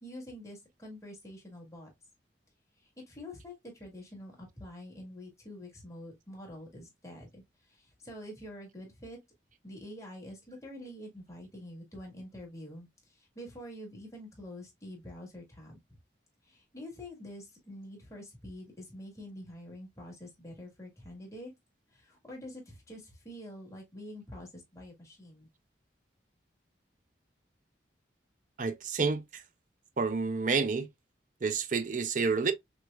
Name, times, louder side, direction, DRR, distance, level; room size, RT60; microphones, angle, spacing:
voice 1, 0.0-1.9 2.8-9.2 9.6-15.8 16.4-21.5 21.9-25.5, left 1 dB, 15° left, 1.6 m, -46 dB
voice 2, 28.6-29.4 30.0-30.9 31.4-32.5, right 4 dB, 45° right, 0.5 m, -29 dB
5.9 x 2.2 x 2.2 m
head